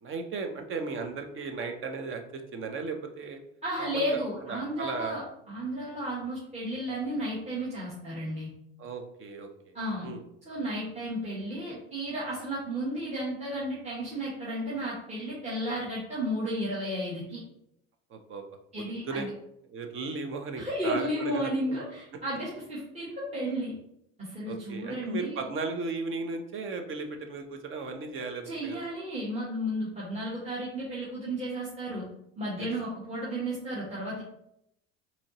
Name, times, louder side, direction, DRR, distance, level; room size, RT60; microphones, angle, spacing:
voice 1, 0.0-3.4 3.8-4.2 4.5-5.2 8.8-9.5 10.0-10.2 18.1-18.4 19.1-19.3 19.7-21.8 24.4-28.8 32.6-32.7, right 4 dB, 40° right, 5 dB, 0.7 m, -36 dB
voice 2, 3.6-5.2 5.5-8.5 9.7-10.1 10.4-17.4 18.7-19.3 20.6-23.8 24.2-25.5 28.4-32.1 32.4-34.2, equal, 20° right, -7 dB, 1.3 m, -33 dB
4.1 x 2.8 x 3.0 m, 0.78 s
supercardioid pair, 90°, 31 cm